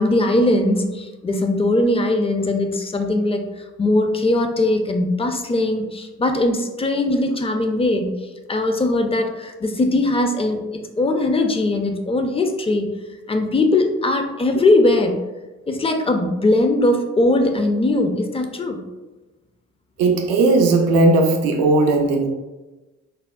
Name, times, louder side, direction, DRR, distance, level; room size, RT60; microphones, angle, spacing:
voice 1, 0.0-8.1 8.5-12.9 13.3-15.2 15.7-18.8, left 2 dB, 20° left, 5 dB, 0.4 m, -20 dB
voice 2, 20.0-22.3, right 2 dB, 85° right, 3 dB, 0.5 m, -16 dB
3.5 x 2.0 x 2.3 m, 1.1 s
hypercardioid pair, 50°, 34 cm